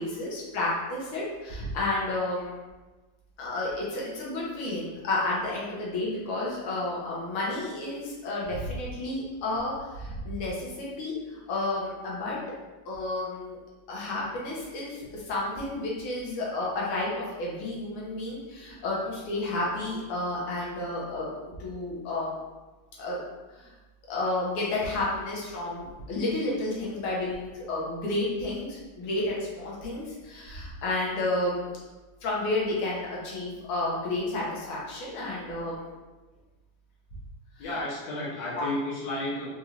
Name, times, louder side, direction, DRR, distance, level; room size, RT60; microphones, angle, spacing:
voice 1, 0.0-2.6 3.4-12.4 12.9-13.6 13.9-22.4 23.0-23.2 23.5-23.7 24.1-31.7 32.2-35.9 37.6-37.7 38.6-38.7, left 2 dB, 85° left, -5 dB, 1.7 m, -31 dB
voice 2, 37.6-39.5, left 1 dB, 65° left, -6 dB, 1.6 m, -32 dB
4.3 x 3.1 x 2.4 m, 1.2 s
omnidirectional pair, 2.3 m